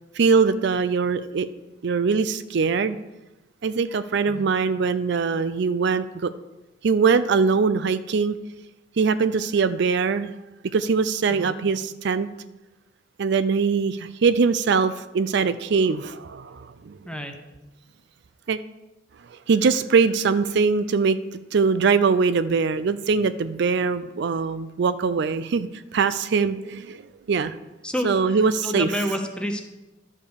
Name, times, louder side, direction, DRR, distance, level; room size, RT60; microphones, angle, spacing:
voice 1, 0.1-1.5 1.8-3.0 3.6-6.3 6.8-8.4 9.0-10.3 10.7-12.3 13.2-17.0 18.5-18.6 19.3-21.2 21.5-27.5 28.0-28.9, right 5 dB, 65° right, 13 dB, 0.4 m, -22 dB
voice 2, 11.3-11.6 17.1-17.4 27.8-29.6, equal, 5° left, 5 dB, 0.9 m, -29 dB
11.5 x 5.4 x 6.4 m, 1.0 s
head